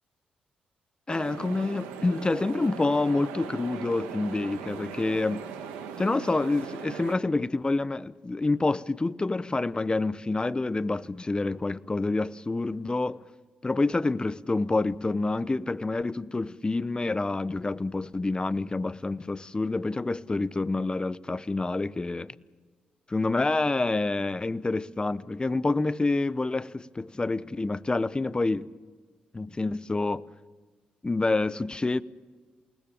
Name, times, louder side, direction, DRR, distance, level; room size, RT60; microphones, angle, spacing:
voice 1, 1.1-5.4 6.0-13.2 13.6-22.3 23.1-28.7 29.3-30.2 31.0-32.0, left 3 dB, 25° left, 0.8 m, -27 dB
sound 1, 1.1-7.2, right 7 dB, 90° right, 2.2 m, -39 dB
28.0 x 19.5 x 7.4 m
hypercardioid pair, 50°, 4 cm